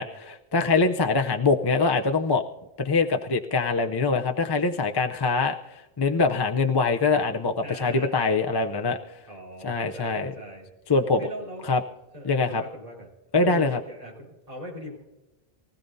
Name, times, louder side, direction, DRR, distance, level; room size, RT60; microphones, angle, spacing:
voice 1, 0.0-2.4 2.8-9.0 9.6-10.3 10.9-11.2 11.7-11.8 12.2-12.6 13.3-13.8, left 4 dB, 30° left, 4 dB, 0.5 m, -23 dB
voice 2, 1.4-1.7 7.6-8.4 9.3-10.7 11.2-11.7 12.1-13.1 13.4-15.0, equal, 35° right, -3 dB, 4.3 m, -40 dB
23.0 x 15.5 x 2.7 m, 1.1 s
omnidirectional pair, 1.1 m